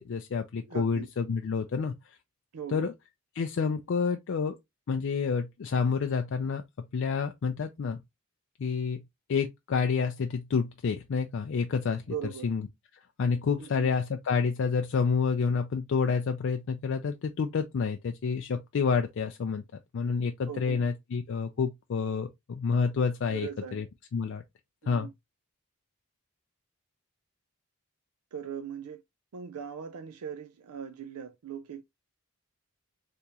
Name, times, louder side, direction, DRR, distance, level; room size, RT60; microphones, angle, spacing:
voice 1, 0.1-1.9 2.7-2.9 3.4-4.6 4.9-6.6 6.9-8.0 8.6-9.0 9.3-12.0 12.4-12.6 13.2-19.6 19.9-23.8 24.1-24.4 24.9-25.1, left 5 dB, 55° left, 0.3 m, -29 dB
voice 2, 0.7-1.1 2.5-2.9 12.1-12.5 13.6-13.9 20.5-20.9 23.3-23.9 24.8-25.1 28.3-29.0 29.3-31.8, right 8 dB, 80° right, 0.4 m, -39 dB
3.5 x 2.9 x 2.7 m
head